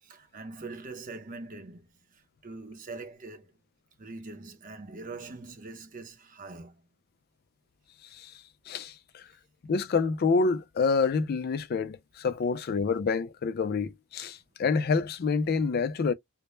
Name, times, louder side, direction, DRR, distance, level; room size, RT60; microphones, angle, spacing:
voice 1, 0.0-1.9 2.4-3.5 4.0-6.7, right 3 dB, 40° right, 0.7 m, -42 dB
voice 2, 8.7-9.3 9.6-16.1, left 4 dB, 45° left, 0.3 m, -27 dB
2.1 x 2.0 x 3.0 m
head